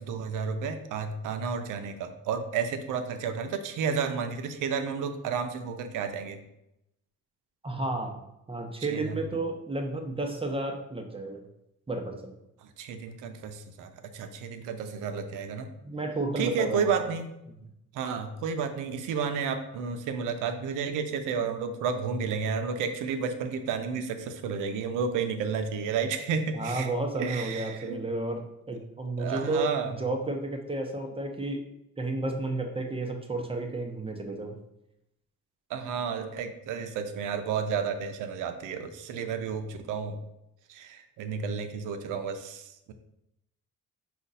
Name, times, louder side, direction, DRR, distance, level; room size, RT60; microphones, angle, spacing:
voice 1, 0.0-6.4 8.9-9.2 12.6-15.7 16.4-17.3 17.9-28.0 29.2-30.0 35.7-40.2 40.7-42.9, right 6 dB, 90° right, 7 dB, 0.6 m, -31 dB
voice 2, 7.6-8.2 8.5-11.5 11.9-12.3 15.8-17.0 26.5-31.6 32.0-34.6, right 2 dB, 20° right, 3 dB, 0.7 m, -32 dB
5.1 x 2.4 x 4.0 m, 0.84 s
cardioid pair, 90°, 30 cm